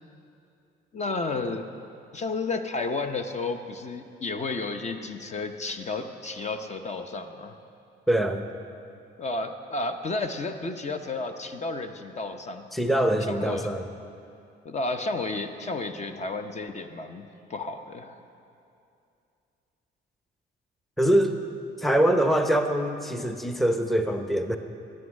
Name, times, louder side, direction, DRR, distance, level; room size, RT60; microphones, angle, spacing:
voice 1, 0.9-1.7 2.1-7.6 9.2-12.7 13.3-13.7 14.6-18.2, left 3 dB, 35° left, 7 dB, 0.8 m, -32 dB
voice 2, 8.1-8.4 12.7-13.9 21.0-21.3 21.8-24.6, right 1 dB, ahead, 6 dB, 0.8 m, -23 dB
13.0 x 8.8 x 6.4 m, 2.6 s
cardioid pair, 90°, 20 cm